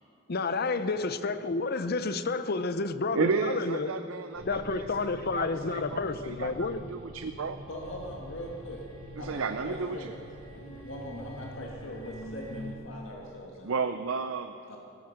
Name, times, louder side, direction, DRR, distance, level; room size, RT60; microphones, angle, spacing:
voice 1, 0.3-3.9 4.4-6.8, left 3 dB, 50° left, 12 dB, 0.7 m, -30 dB
voice 2, 3.1-7.6 9.2-10.1 13.6-14.5, right 4 dB, 85° right, 8 dB, 0.6 m, -33 dB
sound 1, 4.3-12.7, equal, 85° left, 2.4 m, -45 dB
voice 3, 7.7-8.9 9.2-10.1 10.5-13.7 14.7-14.8, equal, 65° left, -1 dB, 1.9 m, -41 dB
16.5 x 14.0 x 5.9 m, 2.6 s
head